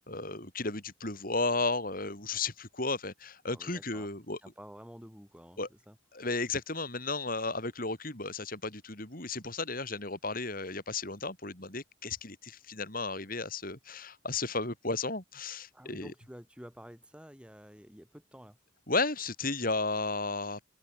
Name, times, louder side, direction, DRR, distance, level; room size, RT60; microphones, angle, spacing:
voice 1, 0.1-4.4 5.6-5.7 6.1-16.1 18.9-20.6, left 3 dB, 45° left, 5.5 m, -34 dB
voice 2, 3.5-4.1 4.4-6.0 15.7-18.6, equal, 5° right, 7.1 m, -50 dB
open air
head